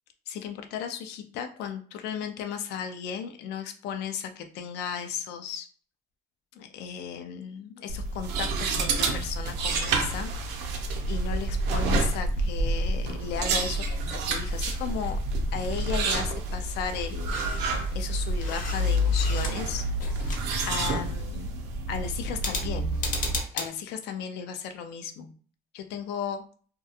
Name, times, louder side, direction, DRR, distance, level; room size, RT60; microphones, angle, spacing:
voice 1, 0.3-5.7 6.6-10.3 11.1-13.8 14.1-15.2 15.5-17.4 17.9-19.8 20.7-21.5 21.9-23.0 23.5-25.3 25.7-26.4, left 7 dB, 80° left, 7 dB, 0.4 m, -35 dB
sound 1, 7.9-23.4, right 2 dB, 90° right, 0.5 m, -28 dB
sound 2, 17.3-17.7 18.1-19.7 20.0-20.9 22.3-23.7, left 4 dB, 50° left, 0.7 m, -35 dB
2.3 x 2.2 x 2.7 m, 0.42 s
cardioid pair, 110°, 17 cm